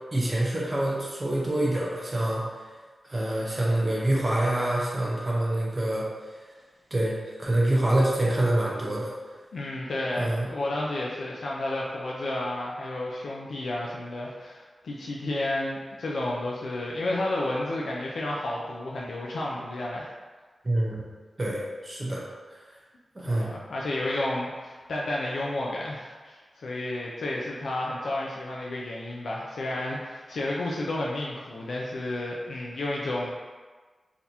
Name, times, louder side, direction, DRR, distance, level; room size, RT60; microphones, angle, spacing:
voice 1, 0.1-2.4 3.1-6.1 6.9-9.1 10.2-10.5 20.6-21.0 21.4-22.2 23.1-23.5, right 1 dB, 30° right, -5 dB, 0.7 m, -26 dB
voice 2, 9.5-20.1 23.2-33.3, left 1 dB, 90° left, -4 dB, 0.4 m, -31 dB
3.9 x 2.9 x 2.6 m, 1.4 s
wide cardioid pair, 105°, 0 cm